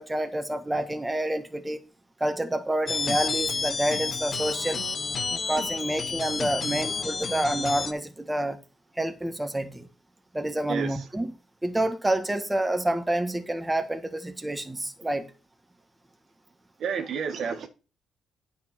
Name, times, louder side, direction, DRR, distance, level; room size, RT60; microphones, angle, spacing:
voice 1, 0.0-1.8 2.2-4.8 5.3-8.6 9.0-9.9 10.3-11.3 11.6-15.3, right 1 dB, 10° right, 1.6 m, -28 dB
sound 1, 2.9-7.9, left 4 dB, 40° left, 1.1 m, -30 dB
voice 2, 10.7-11.0 16.8-17.7, right 6 dB, 65° right, 1.8 m, -30 dB
9.6 x 6.8 x 4.4 m
cardioid pair, 90°, 0 cm